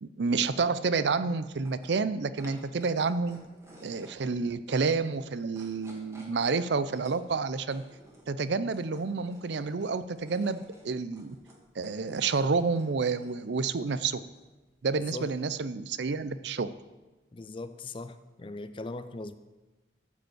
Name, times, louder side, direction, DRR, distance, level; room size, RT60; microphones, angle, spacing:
voice 1, 0.0-3.4 3.8-7.8 8.3-11.4 11.8-14.2 14.8-16.7, right 4 dB, 70° right, 14 dB, 0.5 m, -29 dB
sound 1, 1.5-16.9, equal, 15° right, 2.0 m, -56 dB
voice 2, 17.3-19.4, left 2 dB, 30° left, 12 dB, 0.4 m, -39 dB
13.0 x 5.1 x 7.9 m, 1.2 s
head